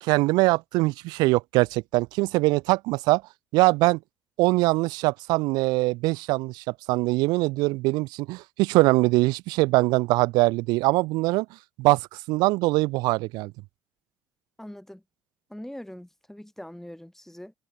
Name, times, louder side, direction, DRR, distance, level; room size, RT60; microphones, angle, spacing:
voice 1, 0.0-3.2 3.5-4.0 4.4-11.5 11.8-13.5, right 22 dB, 65° right, 0.3 m, -22 dB
voice 2, 14.6-15.0 15.5-17.5, left 1 dB, 5° left, 2.6 m, -42 dB
hypercardioid pair, 55°, 7 cm